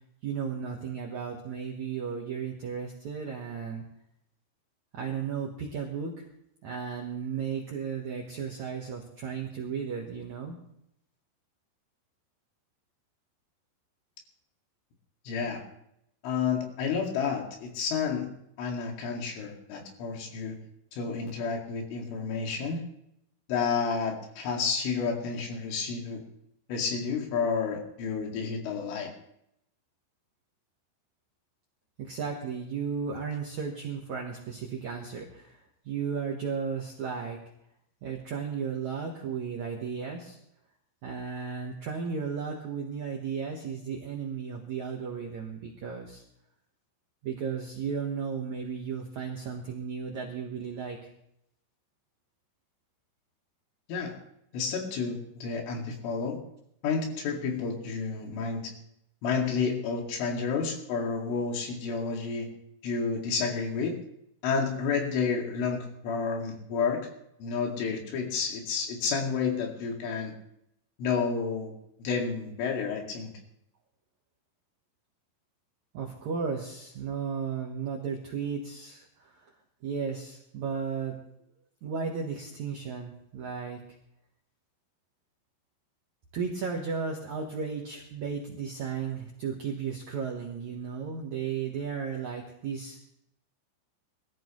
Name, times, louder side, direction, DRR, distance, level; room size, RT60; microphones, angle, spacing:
voice 1, 0.2-3.8 4.9-6.3 6.6-10.6 32.0-37.4 38.0-40.4 41.0-46.2 47.2-51.0 75.9-79.5 79.8-81.2 81.8-83.8 86.3-93.0, right 6 dB, 70° right, -1 dB, 1.7 m, -34 dB
voice 2, 15.3-15.6 16.2-18.3 18.6-20.6 20.9-22.8 23.5-26.2 26.7-29.1 53.9-54.2 54.5-56.4 56.8-58.7 59.2-62.5 62.8-64.0 64.4-67.0 67.4-70.3 71.0-71.7 72.0-73.3, left 5 dB, 85° left, 1 dB, 4.8 m, -30 dB
22.0 x 14.0 x 3.1 m, 0.77 s
omnidirectional pair, 5.5 m